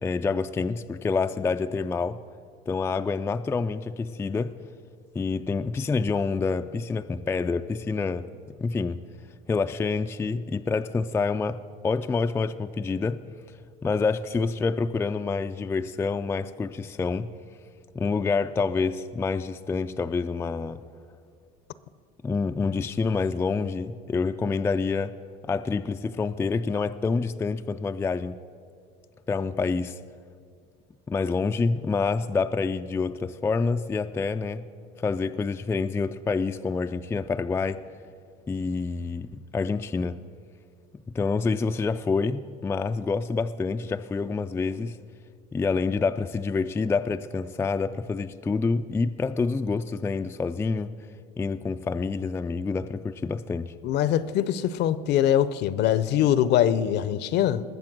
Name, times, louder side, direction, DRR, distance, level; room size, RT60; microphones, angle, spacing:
voice 1, 0.0-2.2 2.7-4.5 5.1-8.3 8.6-9.0 9.5-13.2 13.8-17.3 17.9-20.8 22.2-25.1 25.4-28.4 29.3-30.0 31.1-34.7 35.0-37.8 38.5-40.2 41.1-45.0 45.5-51.0 51.4-53.7, left 4 dB, 10° left, 8 dB, 0.3 m, -27 dB
voice 2, 53.8-57.6, left 11 dB, 55° left, 16 dB, 0.6 m, -23 dB
20.0 x 7.2 x 6.0 m, 2.2 s
supercardioid pair, 105°, 20 cm